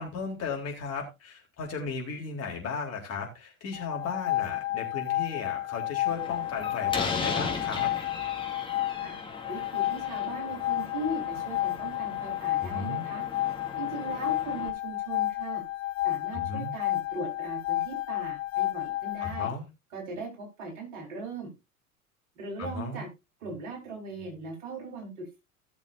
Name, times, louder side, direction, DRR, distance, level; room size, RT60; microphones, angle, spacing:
voice 1, 0.0-7.9 12.6-13.1 16.3-16.7 19.2-19.6 22.6-23.0, left 4 dB, 35° left, 1 dB, 4.1 m, -35 dB
sound 1, 3.7-19.5, left 16 dB, 60° left, 0.7 m, -31 dB
Slam, 6.1-14.7, left 4 dB, 10° left, 2.6 m, -38 dB
voice 2, 9.5-15.6 16.0-19.5 19.9-21.5 22.4-23.1 23.4-25.4, right 2 dB, 55° right, 1 dB, 4.9 m, -39 dB
17.0 x 7.0 x 2.7 m, 0.25 s
figure-of-eight pair, 75°, 43 cm